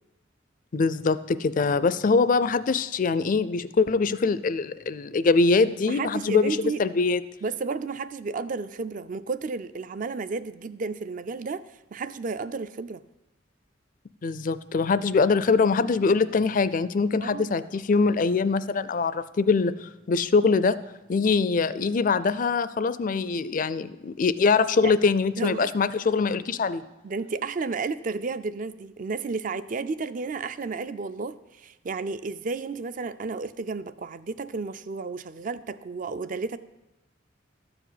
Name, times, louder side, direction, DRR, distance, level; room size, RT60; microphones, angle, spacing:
voice 1, 0.7-7.2 14.2-20.8 21.1-26.8, left 4 dB, 45° left, 15 dB, 0.4 m, -23 dB
voice 2, 5.9-6.8 7.4-11.6 11.9-13.0 17.2-17.5 24.8-24.9 25.3-25.7 27.0-36.6, right 4 dB, 45° right, 14 dB, 0.4 m, -32 dB
13.0 x 4.9 x 8.1 m, 1.0 s
head